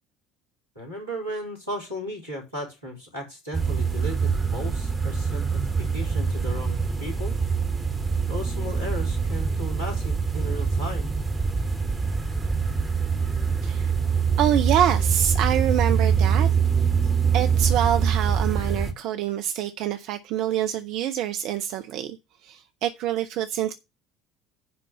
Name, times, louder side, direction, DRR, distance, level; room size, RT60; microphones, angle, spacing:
voice 1, 0.8-7.3 8.3-11.2, equal, 90° right, 3.9 m, -35 dB
sound 1, 3.5-18.9, right 6 dB, 15° right, 2.7 m, -24 dB
voice 2, 13.6-13.9 14.4-16.5 17.3-23.7, right 11 dB, 55° right, 0.7 m, -26 dB
10.5 x 3.9 x 7.4 m
figure-of-eight pair, 60°, 0 cm